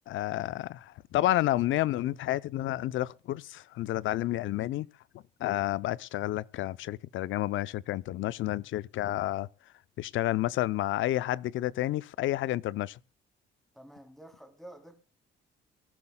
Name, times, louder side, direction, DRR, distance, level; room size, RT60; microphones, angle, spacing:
voice 1, 0.1-4.9 5.4-9.5 10.0-13.0, left 15 dB, 80° left, 0.6 m, -30 dB
voice 2, 13.7-15.0, right 1 dB, ahead, 3.1 m, -50 dB
24.5 x 12.0 x 2.2 m
cardioid pair, 90°, 20 cm